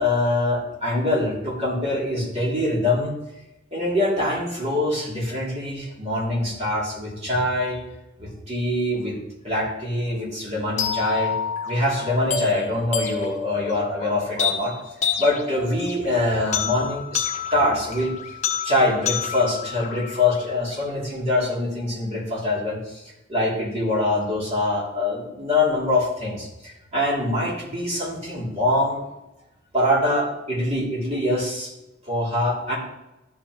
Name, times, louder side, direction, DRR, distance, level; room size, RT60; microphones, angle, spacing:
voice 1, 0.0-3.1 3.7-7.8 8.2-9.2 9.4-11.3 11.7-14.7 15.2-18.2 18.6-23.0 23.3-29.0 29.7-31.7 32.1-32.8, left 1 dB, 35° right, -6 dB, 3.2 m, -24 dB
sound 1, 10.8-20.8, left 7 dB, 35° left, 1.2 m, -29 dB
13.0 x 5.8 x 3.1 m, 0.95 s
head